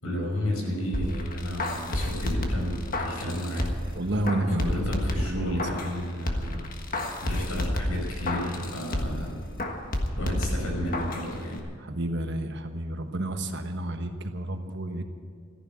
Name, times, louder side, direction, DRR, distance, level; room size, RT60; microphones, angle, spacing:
voice 1, 0.0-3.7 4.4-6.6 7.2-9.4 10.2-11.6, equal, 80° left, 0 dB, 5.4 m, -32 dB
sound 1, 0.9-3.9 4.3-6.0 6.3-9.3 9.6-11.3 11.6-11.7, left 1 dB, 40° left, 1.5 m, -30 dB
voice 2, 4.0-4.8 5.2-5.6 11.8-15.0, right 1 dB, 55° right, 6 dB, 1.2 m, -30 dB
14.5 x 11.0 x 8.7 m, 2.2 s
head